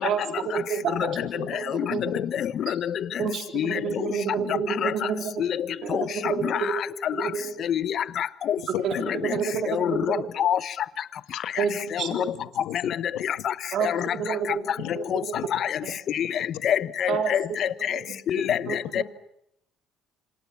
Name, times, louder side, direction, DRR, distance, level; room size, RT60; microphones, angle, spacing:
voice 1, 0.0-2.0 2.7-2.8 3.2-5.4 5.8-6.8 7.1-7.5 8.7-10.3 11.6-12.3 13.7-14.6 15.0-15.4 15.8-15.9 17.1-17.6 17.9-19.0, right 7 dB, 65° right, 3.7 m, -30 dB
voice 2, 1.2-1.5 2.0-2.4 8.7-9.0 9.5-9.6 11.3-11.4 12.4-13.5 14.8-15.0 15.3-15.5 18.5-19.0, left 15 dB, 85° left, 1.3 m, -36 dB
voice 3, 9.7-10.6 12.1-12.2 13.4-13.5 13.8-14.0 15.1-15.2 15.6-15.7 16.2-16.3 16.6-17.7 18.5-18.6 18.9-19.0, left 10 dB, 60° left, 1.2 m, -25 dB
27.0 x 26.5 x 5.9 m
cardioid pair, 90°, 0 cm